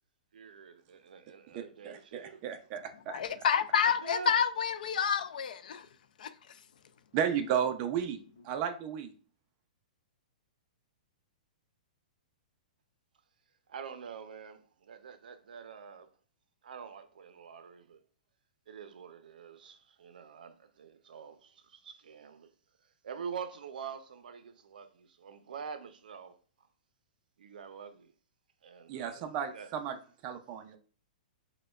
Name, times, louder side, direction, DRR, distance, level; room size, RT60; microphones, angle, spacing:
voice 1, 0.3-2.4 3.8-4.3 13.7-16.1 16.6-18.0 18.7-22.5 22.8-26.7 27.4-28.1 28.6-29.3 29.5-29.7, right 6 dB, 85° right, 0.4 m, -46 dB
voice 2, 1.8-3.2 7.1-8.2 8.4-9.1 28.9-30.0 30.2-30.8, right 8 dB, 30° right, 0.4 m, -33 dB
voice 3, 3.1-5.9 6.2-6.3, left 7 dB, 75° left, 0.4 m, -29 dB
4.9 x 2.1 x 2.3 m
hypercardioid pair, 160°, 5 cm